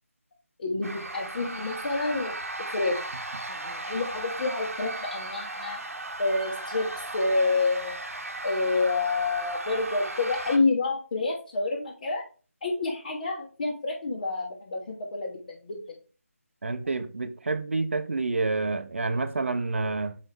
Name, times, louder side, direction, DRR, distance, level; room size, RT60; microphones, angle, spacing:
voice 1, 0.6-2.4 2.7-3.0 3.5-5.8 6.2-6.9 7.1-8.0 8.4-12.2 12.6-16.0, left 3 dB, 30° left, 1.0 m, -28 dB
sound 1, 0.8-10.6, right 2 dB, 75° right, 1.2 m, -36 dB
voice 2, 16.6-20.2, right 3 dB, 55° right, 0.8 m, -28 dB
6.7 x 4.7 x 3.4 m
figure-of-eight pair, 160°, 8 cm